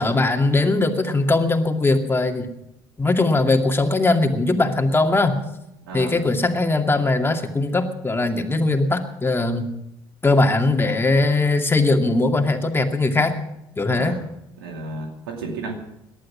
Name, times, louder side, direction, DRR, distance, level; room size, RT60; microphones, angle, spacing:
voice 1, 0.0-2.5 3.0-5.4 5.9-9.7 10.2-13.3 13.8-14.2, left 2 dB, 20° left, 4 dB, 2.4 m, -20 dB
voice 2, 5.8-6.3 13.9-14.2 14.6-15.7, right 3 dB, 90° right, 3 dB, 2.5 m, -32 dB
18.5 x 11.5 x 6.1 m, 0.83 s
hypercardioid pair, 65°, 12 cm